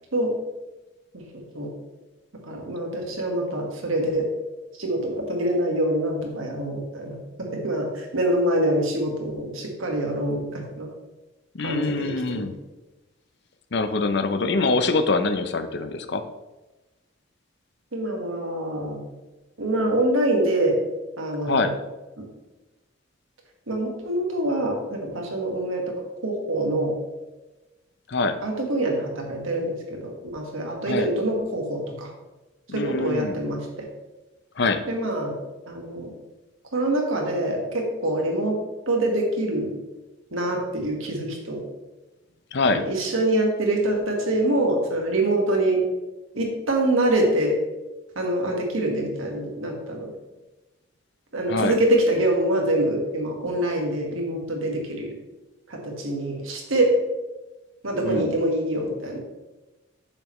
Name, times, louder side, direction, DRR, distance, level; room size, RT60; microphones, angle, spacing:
voice 1, 2.4-4.3 4.8-10.9 11.6-12.5 17.9-19.0 19.6-20.8 21.2-21.7 22.2-22.3 23.7-26.0 26.2-26.9 28.4-32.1 32.7-33.7 34.9-35.4 35.7-36.1 36.7-38.6 38.9-39.7 40.3-41.6 42.7-45.8 46.3-47.6 48.2-50.1 51.3-55.1 55.7-57.0 57.8-59.2, right 1 dB, 80° right, 1 dB, 1.7 m, -25 dB
voice 2, 11.5-12.6 13.7-16.3 21.4-21.8 28.1-28.4 30.8-31.1 32.7-33.4 34.6-34.8 42.5-42.9 51.5-51.8 58.0-58.3, left 3 dB, 55° left, 9 dB, 0.6 m, -24 dB
8.5 x 6.6 x 3.2 m, 1.1 s
head